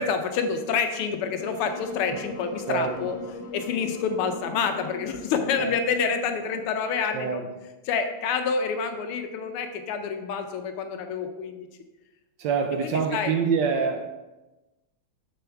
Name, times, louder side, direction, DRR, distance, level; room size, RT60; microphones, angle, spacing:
voice 1, 0.0-3.2 3.5-7.4 7.9-11.7 12.8-13.3, left 6 dB, 90° left, 7 dB, 1.7 m, -28 dB
Wind instrument woodwind instrument, 1.4-6.5, left 2 dB, 60° left, 1.6 m, -40 dB
voice 2, 2.7-3.0 5.6-5.8 7.1-7.5 12.4-14.1, right 6 dB, 75° right, 5 dB, 1.1 m, -26 dB
7.0 x 6.9 x 3.4 m, 1.1 s
omnidirectional pair, 2.4 m